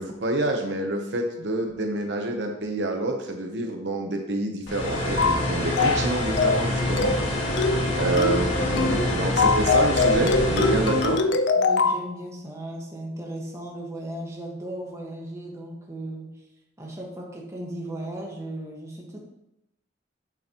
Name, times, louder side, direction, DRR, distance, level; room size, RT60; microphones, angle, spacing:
voice 1, 0.0-7.2 8.0-11.2, right 2 dB, 65° right, 3 dB, 0.8 m, -27 dB
sound 1, 4.7-11.2, left 1 dB, 90° left, 1.7 m, -26 dB
sound 2, 5.2-5.4 5.8-6.1 6.4-6.7 7.0-7.3 7.6-7.9 8.2-8.4 8.8-9.0 9.4-12.0, left 4 dB, 65° left, 0.5 m, -22 dB
voice 2, 11.6-16.3 16.8-19.2, right 1 dB, 15° right, -1 dB, 1.4 m, -36 dB
8.3 x 7.0 x 2.9 m, 0.85 s
head